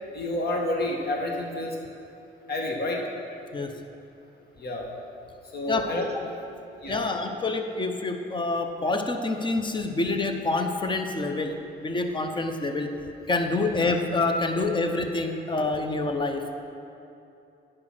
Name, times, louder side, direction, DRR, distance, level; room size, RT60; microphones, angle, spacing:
voice 1, 0.1-1.8 2.5-3.0 4.6-4.9 5.5-6.0 6.8-7.0 13.5-13.6, left 1 dB, 55° left, 0 dB, 1.6 m, -29 dB
voice 2, 6.9-12.9 13.3-16.5, left 3 dB, 25° left, 5 dB, 0.8 m, -27 dB
10.5 x 5.1 x 6.0 m, 2.8 s
cardioid pair, 90°, 20 cm